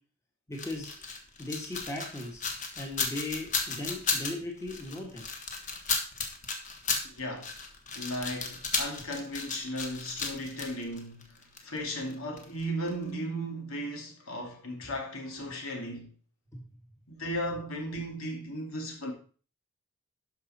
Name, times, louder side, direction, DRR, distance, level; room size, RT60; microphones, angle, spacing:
sound 1, 0.5-12.6 12.9-13.0, left 4 dB, 35° left, 1.4 m, -34 dB
voice 1, 0.5-1.0 1.4-2.4 2.7-5.3 16.5-16.6, left 2 dB, 15° left, 1.8 m, -37 dB
voice 2, 7.0-7.5 7.9-16.1 17.1-19.1, equal, 75° left, 2.5 m, -36 dB
12.0 x 5.7 x 4.3 m
head